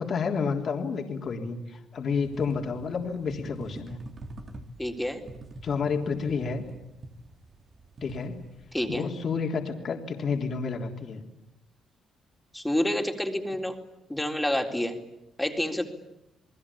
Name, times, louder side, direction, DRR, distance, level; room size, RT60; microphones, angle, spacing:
voice 1, 0.0-4.0 5.6-6.7 8.0-8.4 8.9-11.2, left 5 dB, 55° left, 3 dB, 3.6 m, -30 dB
sound 1, 2.2-9.0, right 1 dB, 40° right, 3.3 m, -44 dB
voice 2, 4.8-5.2 8.7-9.1 12.5-13.7 14.1-14.9 15.4-15.8, left 1 dB, 5° left, 3 dB, 3.9 m, -28 dB
29.5 x 20.5 x 8.7 m, 0.88 s
cardioid pair, 90°, 0 cm